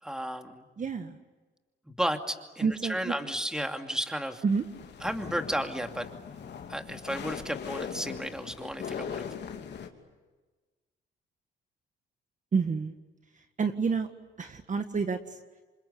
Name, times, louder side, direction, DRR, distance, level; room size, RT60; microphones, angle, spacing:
voice 1, 0.0-0.7 2.0-4.4 5.0-6.1 6.7-9.3, equal, 5° right, 5 dB, 2.5 m, -33 dB
voice 2, 0.8-1.2 2.6-3.1 4.4-4.6 12.5-12.9 13.6-14.1 14.4-15.4, right 5 dB, 40° right, 7 dB, 1.7 m, -28 dB
sound 1, 4.5-9.9, left 7 dB, 60° left, 3.1 m, -40 dB
28.0 x 25.0 x 8.4 m, 1.3 s
cardioid pair, 90°, 20 cm